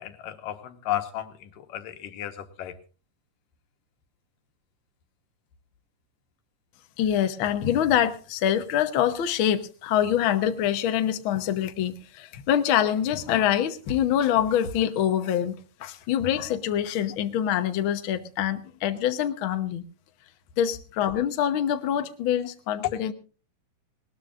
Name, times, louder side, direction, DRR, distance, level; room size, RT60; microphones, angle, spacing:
voice 1, 0.0-2.7, left 12 dB, 85° left, 8 dB, 2.8 m, -34 dB
voice 2, 7.0-19.8 20.6-23.1, left 10 dB, 70° left, 9 dB, 1.2 m, -25 dB
19.5 x 19.5 x 2.5 m, 0.34 s
omnidirectional pair, 3.8 m